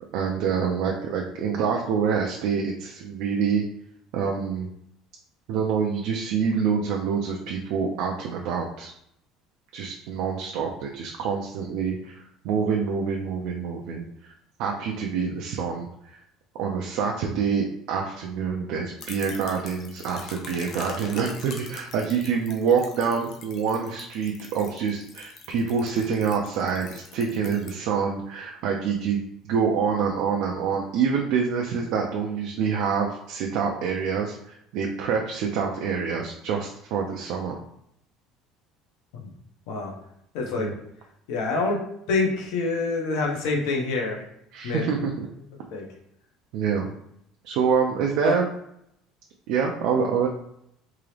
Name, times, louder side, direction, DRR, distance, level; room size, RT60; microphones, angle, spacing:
voice 1, 0.1-3.6 4.1-4.7 5.5-8.9 9.7-14.3 14.6-16.2 16.6-37.6 40.4-40.8 44.5-45.3 46.5-46.9 47.4-48.5 49.5-50.3, right 6 dB, 60° right, 0 dB, 0.6 m, -26 dB
sound 1, 19.0-27.7, left 4 dB, 40° left, 0.7 m, -44 dB
voice 2, 40.3-40.7 41.3-41.8 42.1-44.2 44.6-44.8 45.7-45.9 48.2-48.3, left 3 dB, 75° left, 0 dB, 1.1 m, -26 dB
3.6 x 2.9 x 3.3 m, 0.74 s
cardioid pair, 175°, 0 cm